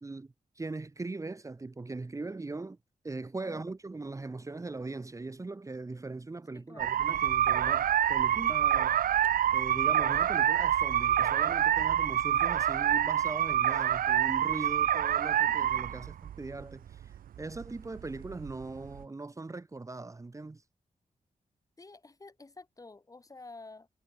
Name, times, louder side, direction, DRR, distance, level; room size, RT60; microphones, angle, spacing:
voice 1, 0.0-2.8 3.0-9.0 9.5-20.6, right 3 dB, 20° right, 1.6 m, -40 dB
voice 2, 6.5-7.0 15.5-16.1 21.8-23.9, left 3 dB, 25° left, 5.7 m, -51 dB
sound 1, 6.8-19.0, right 10 dB, 85° right, 0.4 m, -27 dB
wide cardioid pair, 155°, 14 cm